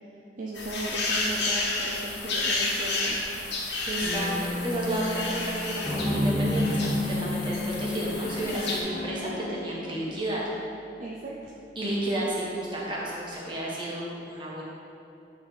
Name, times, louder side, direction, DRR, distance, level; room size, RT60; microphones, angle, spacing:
voice 1, 0.4-3.2 11.0-11.5, right 1 dB, 45° right, -3 dB, 0.5 m, -36 dB
sound 1, 0.6-8.8, left 2 dB, 80° left, 1.3 m, -31 dB
Guitar, 3.6-13.3, left 2 dB, 60° left, 1.2 m, -40 dB
voice 2, 3.9-4.3 4.6-10.4 11.7-14.6, right 1 dB, 25° right, -5 dB, 1.3 m, -31 dB
sound 2, 5.9-10.5, left 1 dB, ahead, 1.2 m, -30 dB
9.7 x 3.5 x 4.5 m, 2.7 s
head